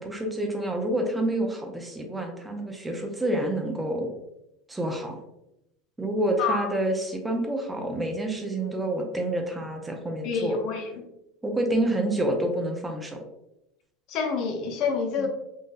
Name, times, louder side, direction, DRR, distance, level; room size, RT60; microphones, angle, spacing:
voice 1, 0.0-4.1 4.7-5.2 6.0-10.6 11.4-13.3 15.2-15.3, right 1 dB, 15° right, 2 dB, 0.7 m, -28 dB
voice 2, 6.4-6.7 10.2-11.0 14.1-15.3, left 5 dB, 60° left, 3 dB, 0.7 m, -27 dB
3.9 x 2.5 x 2.4 m, 0.84 s
hypercardioid pair, 85°, 0 cm